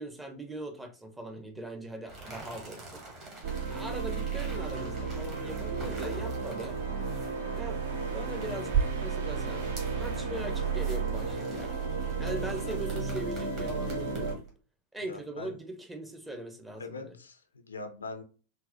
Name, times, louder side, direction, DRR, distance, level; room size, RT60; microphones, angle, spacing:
voice 1, 0.0-3.0 3.7-6.8 7.5-7.8 8.1-9.7 10.0-11.8 12.2-14.4 14.9-17.1, right 1 dB, 10° right, 0.5 m, -40 dB
sound 1, 2.1-14.5, right 6 dB, 35° right, 1.2 m, -40 dB
sound 2, 3.4-14.4, right 5 dB, 60° right, 0.6 m, -33 dB
voice 2, 15.0-15.6 16.8-18.2, left 3 dB, 75° left, 0.4 m, -42 dB
4.1 x 2.0 x 2.4 m
figure-of-eight pair, 90°, 0 cm